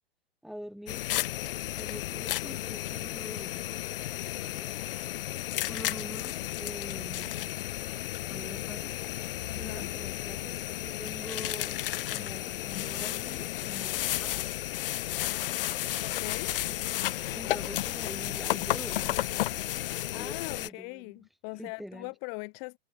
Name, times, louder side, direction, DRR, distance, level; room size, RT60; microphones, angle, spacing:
voice 1, 0.4-1.1 1.7-3.7 4.4-4.7 5.7-7.4 8.3-9.0 9.5-11.8 12.1-14.5 16.7-16.8 17.3-19.2 19.6-19.7 20.1-21.2 21.5-22.1, equal, ahead, 2.1 m, -45 dB
sound 1, 0.9-20.7, left 14 dB, 60° left, 0.8 m, -33 dB
voice 2, 9.5-9.9 16.0-16.5 20.1-22.8, left 40 dB or more, 35° left, 1.2 m, -40 dB
hypercardioid pair, 140°, 32 cm